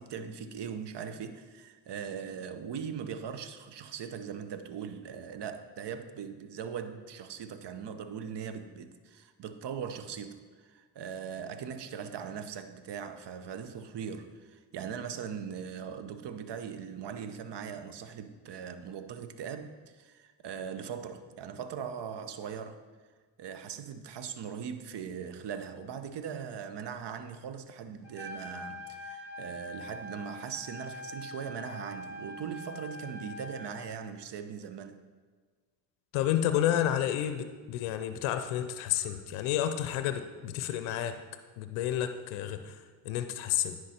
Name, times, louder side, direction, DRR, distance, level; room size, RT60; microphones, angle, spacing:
voice 1, 0.0-22.8 23.4-35.0, right 7 dB, 55° right, 10 dB, 0.8 m, -40 dB
Trumpet, 28.0-33.8, left 1 dB, 5° right, 2.3 m, -43 dB
voice 2, 36.1-41.2 41.6-43.9, left 11 dB, 90° left, 9 dB, 0.6 m, -30 dB
10.0 x 4.8 x 4.3 m, 1.5 s
supercardioid pair, 55°, 49 cm